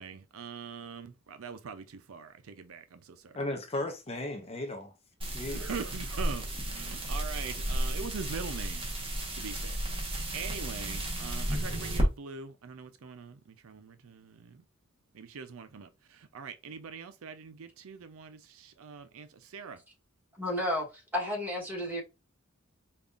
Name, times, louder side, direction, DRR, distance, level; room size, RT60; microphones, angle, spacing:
voice 1, 0.0-3.4 5.5-8.8 9.3-9.8 10.1-14.6 15.1-19.8, right 6 dB, 75° right, 0.5 m, -43 dB
voice 2, 3.3-4.9 5.2-5.7, left 2 dB, 30° left, 0.6 m, -36 dB
sound 1, 5.2-12.1, right 1 dB, 25° right, 1.1 m, -33 dB
voice 3, 20.4-22.0, left 1 dB, 10° right, 1.7 m, -32 dB
5.2 x 2.4 x 2.4 m
head